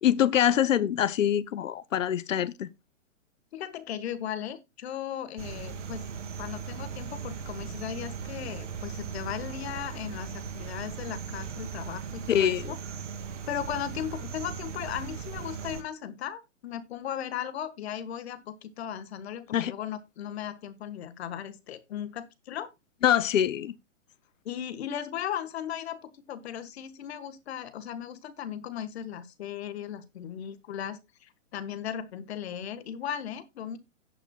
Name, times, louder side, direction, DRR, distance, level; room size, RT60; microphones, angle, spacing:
voice 1, 0.0-2.7 12.3-12.7 19.5-19.7 23.0-23.7, left 10 dB, 80° left, 0.9 m, -24 dB
voice 2, 3.5-6.1 6.4-12.8 13.5-22.7 24.4-33.8, left 9 dB, 55° left, 1.6 m, -37 dB
sound 1, 5.4-15.8, right 6 dB, 65° right, 2.5 m, -38 dB
17.0 x 6.0 x 2.3 m
hypercardioid pair, 150°, 39 cm